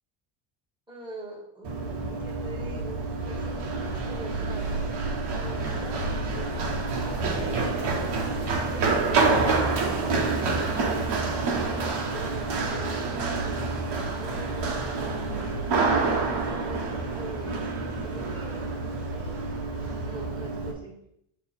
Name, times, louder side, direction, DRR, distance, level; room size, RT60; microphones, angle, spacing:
voice 1, 0.9-5.0 5.3-7.6 8.7-11.3 12.0-13.1 13.4-17.6 18.0-21.0, right 1 dB, 10° right, -4 dB, 2.0 m, -43 dB
Run, 1.6-20.7, right 3 dB, 55° right, 1.3 m, -28 dB
6.7 x 3.3 x 4.4 m, 0.75 s
cardioid pair, 120°, 50 cm